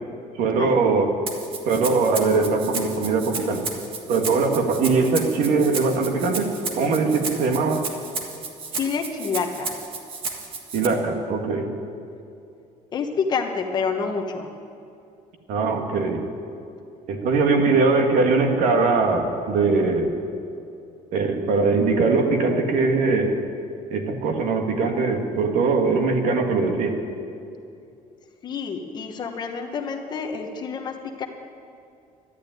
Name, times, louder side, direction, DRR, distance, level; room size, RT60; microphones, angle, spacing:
voice 1, 0.4-1.1 1.7-3.7 4.1-6.5 6.8-7.8 10.7-11.7 15.5-16.2 17.1-20.1 21.1-23.4 23.9-27.0, right 4 dB, 65° right, 4 dB, 1.9 m, -21 dB
Rattle (instrument), 1.3-10.9, right 4 dB, 40° right, 1.7 m, -33 dB
voice 2, 8.7-9.7 12.9-14.5 28.4-31.3, left 5 dB, 30° left, 3 dB, 1.2 m, -28 dB
12.0 x 12.0 x 9.2 m, 2.6 s
cardioid pair, 170°, 14 cm